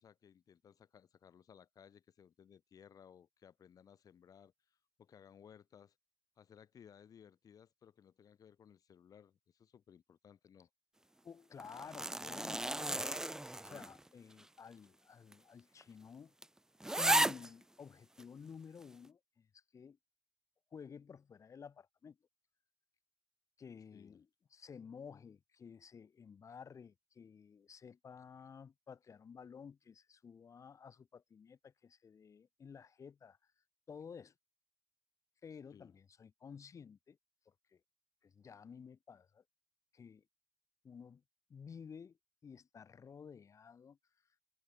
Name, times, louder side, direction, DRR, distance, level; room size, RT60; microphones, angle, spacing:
voice 1, 0.0-5.9 6.4-10.7 23.9-24.2 35.7-35.9, left 8 dB, 80° left, 4.6 m, -61 dB
voice 2, 11.2-13.1 13.3-16.3 17.0-20.0 20.7-22.2 23.6-24.3 24.5-33.4 33.9-34.3 35.4-37.2 37.4-37.8 38.2-39.4 39.9-40.2 40.8-41.2 41.5-42.2 42.4-44.0, left 6 dB, 60° left, 4.7 m, -53 dB
sound 1, 11.6-14.1 14.4-14.5 15.3-15.4 15.8-15.9 16.4-16.5 16.8-17.5 18.2-18.3, right 1 dB, 10° right, 0.7 m, -34 dB
wide cardioid pair, 125°, 6 cm